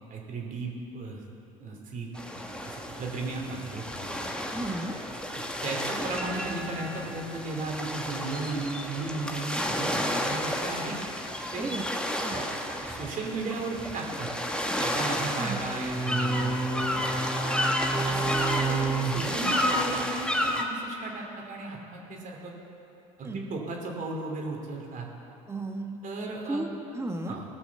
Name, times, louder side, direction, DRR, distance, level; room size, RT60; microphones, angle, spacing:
voice 1, 0.1-1.2 1.6-4.6 5.6-11.0 11.5-11.8 12.3-12.5 12.7-14.3 14.8-17.3 17.9-22.5 23.2-25.1 26.0-26.6 27.3-27.4, right 3 dB, 45° right, 0 dB, 2.8 m, -35 dB
sound 1, 2.1-20.6, equal, 5° left, 1.3 m, -30 dB
voice 2, 4.5-5.0 11.6-11.8 12.2-12.4 15.4-15.6 19.4-19.6 23.2-23.4 25.5-26.0 26.5-27.4, right 2 dB, 15° right, 4 dB, 1.4 m, -34 dB
18.0 x 6.1 x 6.9 m, 2.8 s
hypercardioid pair, 75°, 18 cm